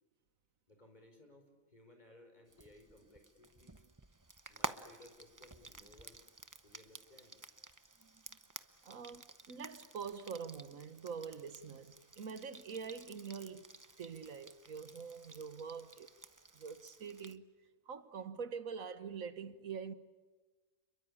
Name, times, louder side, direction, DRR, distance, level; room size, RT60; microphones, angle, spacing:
voice 1, 0.7-3.8 4.5-6.2 6.6-7.4, left 1 dB, 30° left, 5.0 m, -61 dB
Frying (food), 2.5-17.4, right 2 dB, 15° right, 0.7 m, -51 dB
voice 2, 8.8-13.7 14.0-16.1 16.6-17.4 17.9-19.9, right 6 dB, 80° right, 1.7 m, -45 dB
29.5 x 22.5 x 8.6 m
omnidirectional pair, 1.4 m